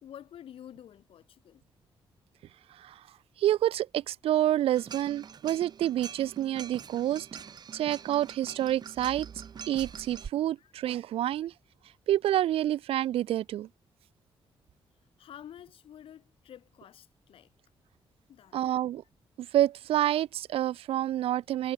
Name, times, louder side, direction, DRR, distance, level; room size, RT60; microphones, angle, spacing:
voice 1, 0.0-1.6 10.6-10.7 15.2-17.5 18.3-18.6, left 10 dB, 70° left, 2.0 m, -49 dB
voice 2, 3.4-7.3 7.7-9.3 9.7-11.5 12.1-13.7 18.5-19.0 19.4-21.7, right 12 dB, 90° right, 0.5 m, -28 dB
sound 1, 4.7-10.3, right 7 dB, 45° right, 4.7 m, -44 dB
wide cardioid pair, 145°, 10 cm